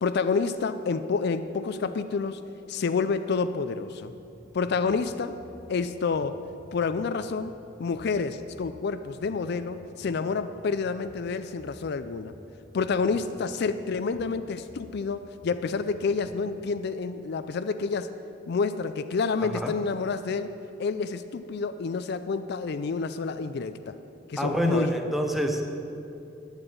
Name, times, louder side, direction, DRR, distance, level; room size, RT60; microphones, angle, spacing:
voice 1, 0.0-2.4 2.7-4.1 4.5-5.4 5.7-6.4 6.7-7.5 7.8-12.3 12.7-18.1 18.5-20.5 20.8-24.0 24.3-24.9, left 4 dB, 55° left, 11 dB, 0.4 m, -28 dB
sound 1, 4.1-16.5, equal, 20° right, 1.2 m, -52 dB
voice 2, 19.4-19.8 24.4-25.7, equal, ahead, 3 dB, 0.9 m, -27 dB
9.7 x 7.9 x 9.0 m, 2.7 s
head